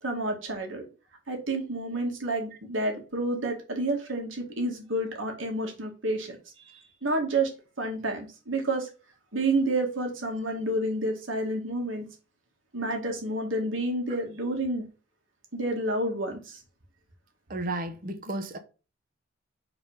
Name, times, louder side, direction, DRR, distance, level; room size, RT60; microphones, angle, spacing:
voice 1, 0.0-0.8 1.3-7.5 7.8-8.9 9.3-12.1 12.7-14.8 15.5-16.6, right 2 dB, 80° right, 2.1 m, -29 dB
voice 2, 17.5-18.6, right 2 dB, 45° right, 1.1 m, -33 dB
5.4 x 4.4 x 5.5 m
head